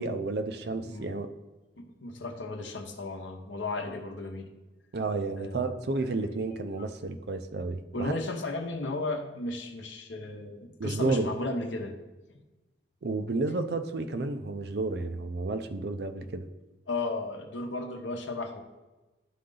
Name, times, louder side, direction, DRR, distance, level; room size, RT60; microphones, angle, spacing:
voice 1, 0.0-1.3 4.9-8.1 10.8-11.3 13.0-16.5, right 3 dB, 60° right, 9 dB, 0.5 m, -31 dB
voice 2, 0.8-1.3 1.8-4.5 5.4-5.7 7.9-11.9 12.3-12.4 16.9-18.6, left 2 dB, 85° left, 5 dB, 0.9 m, -35 dB
11.0 x 3.8 x 3.8 m, 1.1 s
head